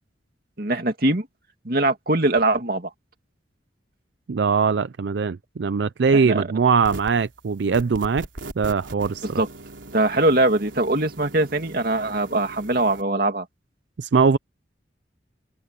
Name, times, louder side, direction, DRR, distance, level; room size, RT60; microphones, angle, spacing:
voice 1, 0.6-1.3 1.6-2.9 6.1-6.5 9.4-9.5 9.9-13.5, right 2 dB, 50° right, 2.5 m, -22 dB
voice 2, 4.3-8.3 8.6-9.4 14.0-14.4, right 5 dB, 65° right, 0.4 m, -21 dB
sound 1, 6.8-7.3 7.7-13.0, right 2 dB, 85° right, 3.6 m, -40 dB
head